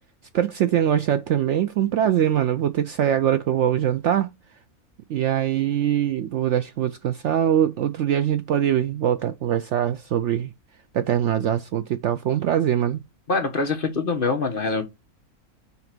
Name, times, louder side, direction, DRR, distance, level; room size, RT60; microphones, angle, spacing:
voice 1, 0.3-4.3 5.1-10.5 10.9-13.0, right 10 dB, 65° right, 0.7 m, -22 dB
voice 2, 13.3-14.8, left 3 dB, 40° left, 1.2 m, -24 dB
5.7 x 3.9 x 6.0 m
omnidirectional pair, 1.6 m